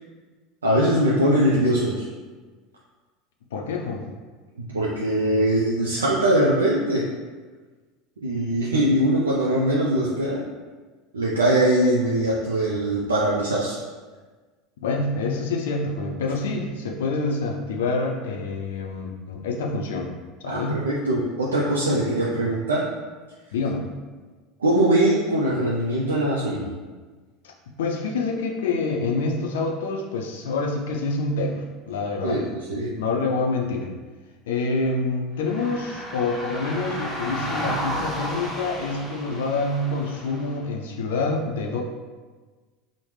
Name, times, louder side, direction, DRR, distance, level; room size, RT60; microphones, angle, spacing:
voice 1, 0.6-2.0 4.7-7.0 8.2-10.4 11.1-13.8 20.4-22.9 24.6-26.7 32.2-32.4 32.7-32.9, right 1 dB, 90° right, -5 dB, 0.3 m, -21 dB
voice 2, 3.5-4.0 14.8-20.1 20.4-20.8 23.5-23.8 27.4-27.5 27.8-32.4 32.9-33.9 34.5-41.8, left 3 dB, 75° left, 1 dB, 0.4 m, -27 dB
sound 1, 35.4-40.6, equal, 5° left, 0.8 m, -33 dB
3.1 x 2.0 x 3.2 m, 1.4 s
hypercardioid pair, 80°, 0 cm